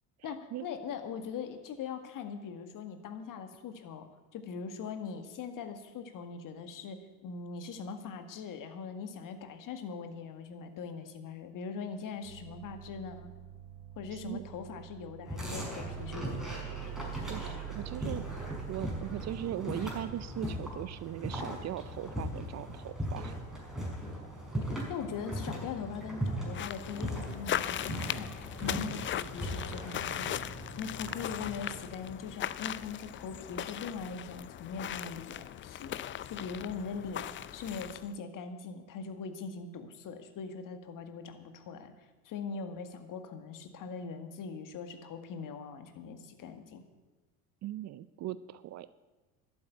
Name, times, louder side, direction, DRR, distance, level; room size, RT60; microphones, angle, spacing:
voice 1, 0.2-13.3 14.0-16.5 24.6-30.5 30.8-46.8, left 5 dB, 45° left, 8 dB, 1.9 m, -41 dB
sound 1, 12.2-24.0 24.9-25.2, right 13 dB, 75° right, 2.5 m, -46 dB
voice 2, 14.1-14.4 17.3-18.2 18.7-23.3 47.6-48.9, right 13 dB, 40° right, 16 dB, 0.6 m, -39 dB
sound 2, 15.3-31.7, equal, ahead, 5.9 m, -39 dB
sound 3, 26.5-38.1, left 11 dB, 30° left, 0.5 m, -39 dB
11.5 x 8.8 x 9.2 m, 1.2 s
hypercardioid pair, 80°, 43 cm